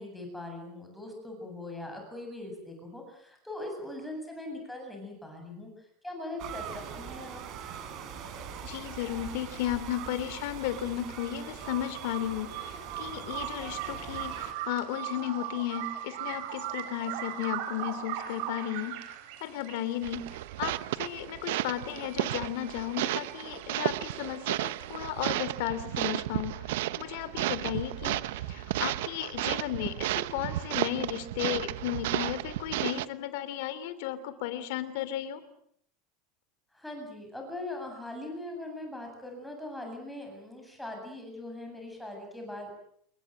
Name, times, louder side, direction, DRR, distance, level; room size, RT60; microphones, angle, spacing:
voice 1, 0.0-7.4 36.7-42.7, left 1 dB, ahead, 2 dB, 8.0 m, -41 dB
sound 1, 6.4-14.5, right 7 dB, 35° right, 4.9 m, -42 dB
sound 2, 8.3-25.3, right 11 dB, 60° right, 4.8 m, -41 dB
voice 2, 8.6-19.1 19.4-20.2 20.6-26.7 27.0-35.4, left 12 dB, 60° left, 14 dB, 3.2 m, -34 dB
sound 3, 20.0-33.0, right 15 dB, 80° right, 1.0 m, -33 dB
27.5 x 22.5 x 7.7 m, 0.68 s
supercardioid pair, 170°, 0 cm